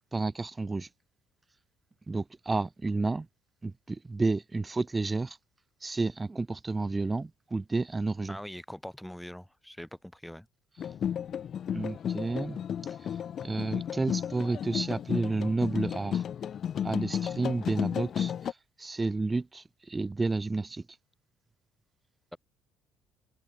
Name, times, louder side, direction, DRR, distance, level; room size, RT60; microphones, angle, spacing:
voice 1, 0.1-0.9 2.1-3.3 3.6-5.4 5.8-8.4 11.7-12.6 13.4-16.2 16.8-18.3 18.8-20.8, right 3 dB, 20° right, 0.6 m, -31 dB
voice 2, 8.3-10.5 22.3-22.4, equal, 5° left, 3.7 m, -43 dB
sound 1, 10.8-18.5, left 9 dB, 50° left, 0.3 m, -33 dB
open air
cardioid pair, 100°, 0 cm